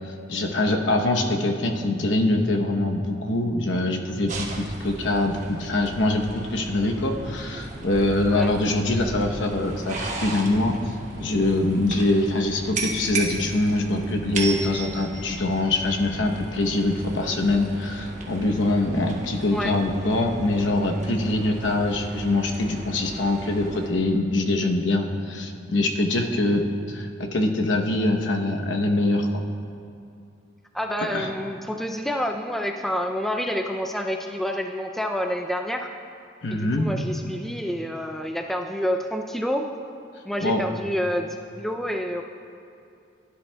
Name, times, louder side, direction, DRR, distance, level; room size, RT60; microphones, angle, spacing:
voice 1, 0.3-10.9 11.2-29.4 31.1-31.3 36.4-36.9 40.4-40.6, left 2 dB, 75° left, 3 dB, 0.9 m, -24 dB
sound 1, 4.3-23.9, right 2 dB, 40° right, 1.1 m, -36 dB
voice 2, 30.7-35.9 36.5-39.7 40.3-42.2, equal, ahead, 3 dB, 0.3 m, -28 dB
16.0 x 10.0 x 2.2 m, 2.5 s
head